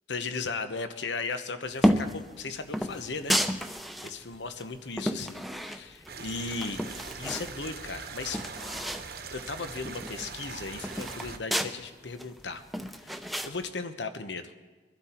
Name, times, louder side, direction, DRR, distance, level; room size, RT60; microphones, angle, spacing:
voice 1, 0.1-3.7 4.0-6.8 7.2-8.4 9.3-12.6 13.0-14.5, left 4 dB, 90° left, 9 dB, 1.1 m, -36 dB
sound 1, 1.8-2.2 2.7-4.1 4.6-6.1 6.5-7.5 7.9-8.0 8.2-9.1 9.4-9.5 9.8-11.7 12.2-13.5, equal, ahead, 0.7 m, -30 dB
sound 2, 6.1-11.4, right 5 dB, 60° right, 1.0 m, -42 dB
23.5 x 12.0 x 4.5 m, 1.3 s
head